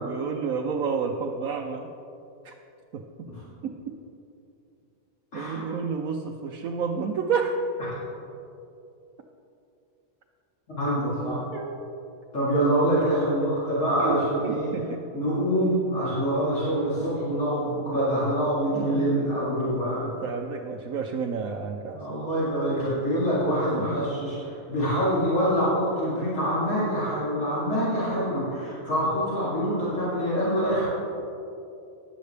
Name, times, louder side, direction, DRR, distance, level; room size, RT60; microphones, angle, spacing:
voice 1, 0.0-1.9 2.4-2.5 2.9-3.3 3.6-3.9 5.3-7.5 11.5-11.9 13.0-13.2 14.0-15.0 18.7-19.2 19.5-22.0 23.8-24.0, right 5 dB, 75° right, 1 dB, 1.1 m, -31 dB
voice 2, 5.3-5.7 10.7-11.4 12.3-14.7 15.1-20.1 21.9-30.8, equal, 60° left, -10 dB, 3.8 m, -25 dB
16.0 x 11.5 x 3.4 m, 2.7 s
omnidirectional pair, 1.5 m